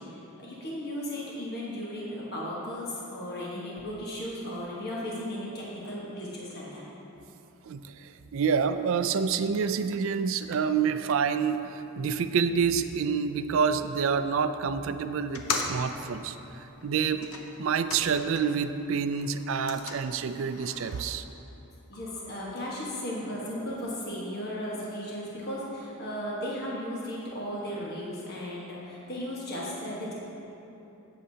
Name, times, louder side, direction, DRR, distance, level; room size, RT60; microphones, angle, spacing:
voice 1, 0.0-6.8 21.9-30.1, equal, 45° left, -5 dB, 1.3 m, -36 dB
voice 2, 7.7-16.4 16.8-17.3 17.6-21.2, right 6 dB, 60° right, 10 dB, 0.3 m, -28 dB
sound 1, 15.2-18.7 19.0-21.0, left 4 dB, 75° left, 0.7 m, -38 dB
15.0 x 6.5 x 2.8 m, 3.0 s
head